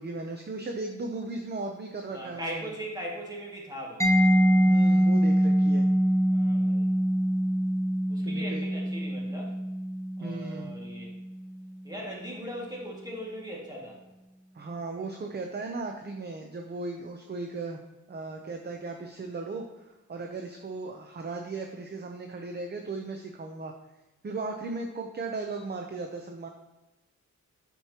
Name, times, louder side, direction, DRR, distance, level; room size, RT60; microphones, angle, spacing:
voice 1, 0.0-2.7 4.6-5.9 8.2-8.6 10.2-10.7 14.5-17.8 18.1-23.7 24.2-26.5, right 3 dB, 35° right, 3 dB, 0.6 m, -36 dB
voice 2, 2.1-4.1 6.3-6.9 8.1-9.6 10.2-11.1 11.8-14.0, equal, 10° right, -4 dB, 2.0 m, -39 dB
Mallet percussion, 4.0-11.5, equal, 10° left, 0.9 m, -24 dB
9.0 x 6.1 x 2.9 m, 1.1 s
wide cardioid pair, 125°, 31 cm